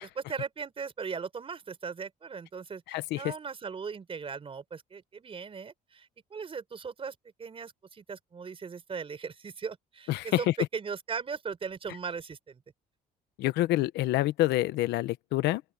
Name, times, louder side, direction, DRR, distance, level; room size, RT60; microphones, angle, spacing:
voice 1, 0.0-12.6, right 5 dB, 35° right, 4.9 m, -38 dB
voice 2, 2.9-3.3 10.1-10.5 13.4-15.6, left 16 dB, 85° left, 1.0 m, -27 dB
open air
cardioid pair, 110°, 17 cm